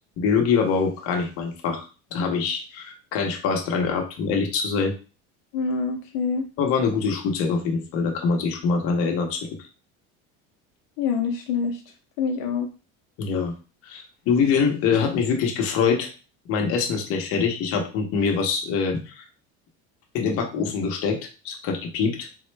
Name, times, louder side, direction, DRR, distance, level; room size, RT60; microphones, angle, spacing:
voice 1, 0.2-4.9 6.6-9.5 13.2-13.5 13.8-16.1 16.5-19.2 20.1-21.2 21.4-22.3, left 5 dB, 50° left, 2 dB, 0.8 m, -24 dB
voice 2, 5.5-6.5 11.0-11.8 12.2-12.7, left 5 dB, 75° left, 3 dB, 0.7 m, -25 dB
3.8 x 2.1 x 3.2 m, 0.33 s
cardioid pair, 160°, 29 cm